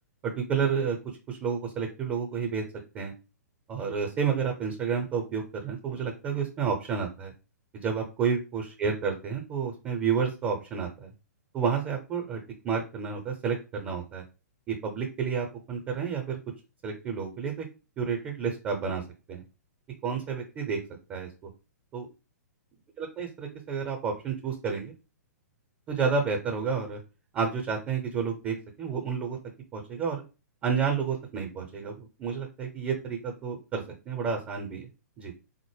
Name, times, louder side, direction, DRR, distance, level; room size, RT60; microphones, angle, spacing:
voice 1, 0.2-1.0 1.3-2.6 2.9-3.1 3.7-7.3 7.7-11.1 11.5-14.2 14.7-16.4 16.8-17.7 18.0-19.0 19.3-19.4 20.0-20.8 21.1-21.3 21.9-22.1 23.0-24.9 25.9-27.0 27.3-29.4 29.7-30.2 30.6-34.9 35.2-35.3, right 6 dB, 20° right, 2 dB, 0.7 m, -30 dB
4.0 x 2.1 x 3.2 m, 0.31 s
figure-of-eight pair, 115°, 9 cm